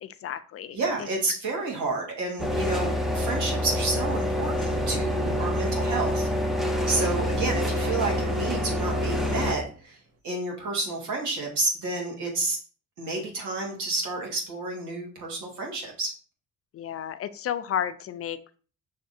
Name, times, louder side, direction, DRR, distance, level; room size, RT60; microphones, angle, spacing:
voice 1, 0.0-0.8 16.7-18.6, left 9 dB, 50° left, 12 dB, 0.4 m, -32 dB
voice 2, 0.7-6.3 6.9-10.0 10.2-12.6 13.0-16.1, right 3 dB, 80° right, -1 dB, 1.9 m, -30 dB
sound 1, 2.4-9.6, left 1 dB, ahead, 0.7 m, -27 dB
sound 2, 4.7-6.6 7.2-8.5 9.0-9.9, right 3 dB, 50° right, 0.8 m, -41 dB
5.7 x 3.2 x 2.7 m, 0.39 s
cardioid pair, 90°, 30 cm